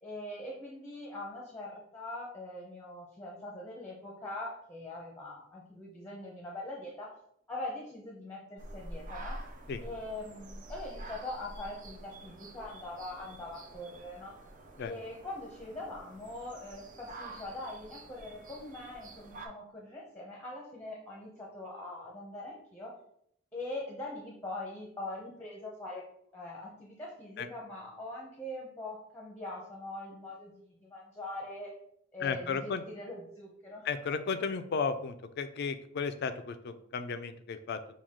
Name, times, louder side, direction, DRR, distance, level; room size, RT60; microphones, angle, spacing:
voice 1, 0.0-7.1 7.5-9.4 9.8-14.3 14.8-22.9 23.5-26.1 26.3-31.7 32.1-33.9, left 2 dB, 10° left, -3 dB, 0.8 m, -42 dB
sound 1, 8.6-19.5, right 1 dB, 40° right, 0.6 m, -47 dB
voice 2, 32.2-32.8 33.8-37.8, left 5 dB, 50° left, 10 dB, 0.4 m, -34 dB
6.0 x 2.3 x 3.6 m, 0.70 s
head